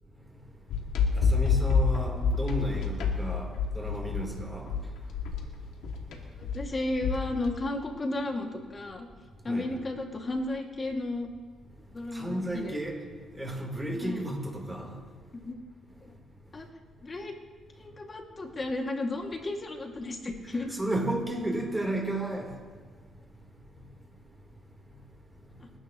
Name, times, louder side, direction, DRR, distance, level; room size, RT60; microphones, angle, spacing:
sound 1, 0.7-7.5, left 5 dB, 90° left, 2.4 m, -28 dB
voice 1, 1.2-4.7 9.5-9.8 12.1-13.0 13.3-14.9 20.7-22.5, right 1 dB, 10° right, 3.9 m, -33 dB
voice 2, 6.5-9.1 9.4-11.3 11.9-12.7 14.0-14.2 15.3-15.6 16.0-16.1 16.5-16.7 17.0-17.3 17.8-20.7, left 2 dB, 30° left, 2.5 m, -33 dB
28.5 x 11.5 x 3.2 m
cardioid pair, 90°, 0 cm